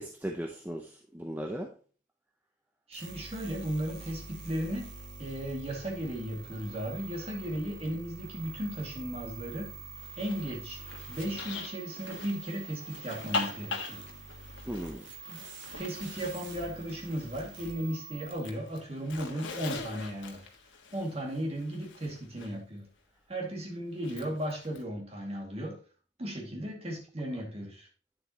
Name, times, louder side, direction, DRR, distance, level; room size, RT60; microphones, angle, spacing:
voice 1, 0.0-1.7 14.7-15.1, right 1 dB, 10° right, 0.6 m, -37 dB
voice 2, 2.9-4.9 5.2-9.7 10.2-10.8 11.1-14.1 15.3-15.5 15.8-20.5 20.9-22.9 23.3-25.8 26.2-27.9, right 1 dB, 30° right, 2.1 m, -36 dB
sound 1, 2.9-18.5, right 4 dB, 75° right, 1.8 m, -46 dB
Zipper (clothing), 10.0-17.8 18.1-22.5 24.0-24.8, left 4 dB, 85° left, 1.4 m, -42 dB
9.0 x 7.3 x 2.9 m
head